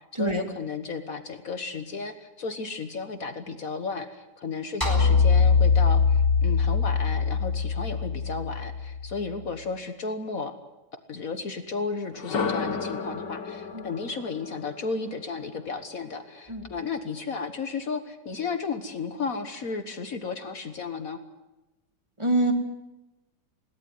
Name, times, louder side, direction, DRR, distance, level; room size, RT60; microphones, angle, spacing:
voice 1, 0.1-10.5 11.1-21.2, left 4 dB, 50° left, 9 dB, 1.7 m, -33 dB
sound 1, 4.8-9.2, left 5 dB, 10° left, 4.0 m, -22 dB
sound 2, 12.1-16.1, left 5 dB, 80° left, 2.4 m, -33 dB
voice 2, 22.2-22.5, right 2 dB, 15° right, 5 dB, 2.4 m, -24 dB
21.0 x 18.0 x 9.5 m, 1.0 s
omnidirectional pair, 1.9 m